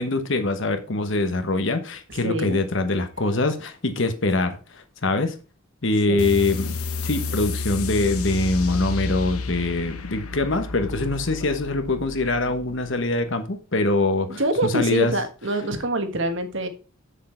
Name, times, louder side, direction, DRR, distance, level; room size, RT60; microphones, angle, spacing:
voice 1, 0.0-5.3 5.8-6.8 7.0-15.1, left 2 dB, 55° left, 1.1 m, -24 dB
voice 2, 2.2-2.6 6.1-6.3 14.3-16.7, right 1 dB, 55° right, 1.4 m, -25 dB
sound 1, 6.2-13.3, left 3 dB, 90° left, 1.0 m, -31 dB
7.7 x 6.6 x 4.4 m
head